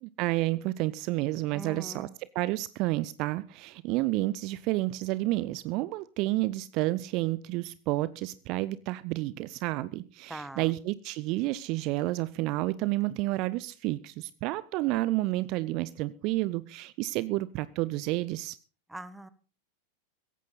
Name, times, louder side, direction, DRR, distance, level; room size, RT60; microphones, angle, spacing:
voice 1, 0.0-2.1 2.3-18.6, right 18 dB, 40° right, 19 dB, 0.6 m, -30 dB
voice 2, 1.5-2.1 10.3-10.7 18.9-19.3, right 1 dB, 5° right, 15 dB, 1.2 m, -42 dB
16.5 x 14.5 x 4.0 m, 0.37 s
figure-of-eight pair, 90°, 0 cm